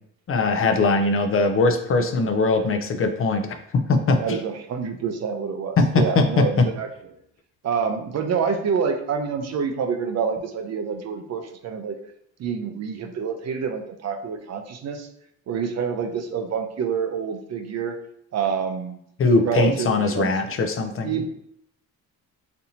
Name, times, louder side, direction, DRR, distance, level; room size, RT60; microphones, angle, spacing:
voice 1, 0.3-3.5 3.9-4.4 5.8-6.4 19.2-21.1, left 3 dB, 40° left, 6 dB, 0.5 m, -21 dB
voice 2, 4.2-7.1 7.6-12.0 12.4-15.1 15.5-18.0 18.3-19.0 19.4-20.3 21.0-21.3, right 6 dB, 50° right, 6 dB, 0.5 m, -27 dB
4.2 x 2.7 x 2.7 m, 0.72 s
cardioid pair, 90°, 34 cm